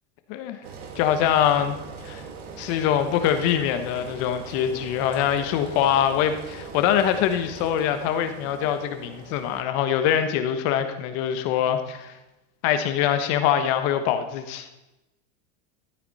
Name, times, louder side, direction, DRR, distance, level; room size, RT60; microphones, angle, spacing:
Engine, 0.6-9.6, right 5 dB, 70° right, 2.5 m, -41 dB
voice 1, 0.9-1.8 2.0-2.2 2.6-12.2 12.6-14.7, left 9 dB, 40° left, 8 dB, 1.2 m, -23 dB
13.5 x 9.6 x 4.1 m, 1.0 s
supercardioid pair, 150°, 38 cm